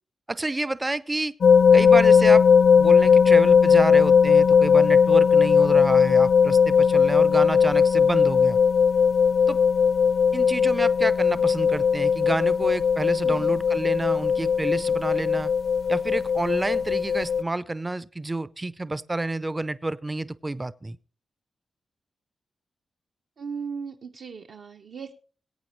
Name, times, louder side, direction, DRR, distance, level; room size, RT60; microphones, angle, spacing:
voice 1, 0.3-1.3 1.7-2.4 2.8-8.6 9.5-9.6 10.3-15.5 15.9-21.0, right 2 dB, 20° right, 17 dB, 0.4 m, -29 dB
sound 1, 1.4-17.4, left 6 dB, 65° left, 0.5 m, -18 dB
voice 2, 13.2-13.6 23.4-25.1, right 6 dB, 70° right, 2 dB, 0.8 m, -37 dB
21.0 x 8.6 x 3.1 m, 0.39 s
wide cardioid pair, 110°, 0 cm